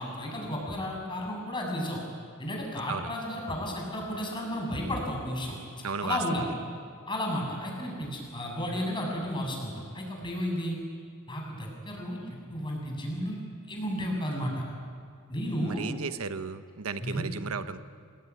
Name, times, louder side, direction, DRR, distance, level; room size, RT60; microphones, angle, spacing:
voice 1, 0.0-2.0 2.4-5.6 6.0-6.5 7.1-10.8 11.3-13.4 13.7-14.6 15.3-15.9 17.0-17.2, equal, 25° left, 0 dB, 7.1 m, -33 dB
voice 2, 5.8-6.4 15.6-17.8, right 5 dB, 85° right, 10 dB, 1.0 m, -34 dB
27.0 x 20.0 x 9.6 m, 2.3 s
head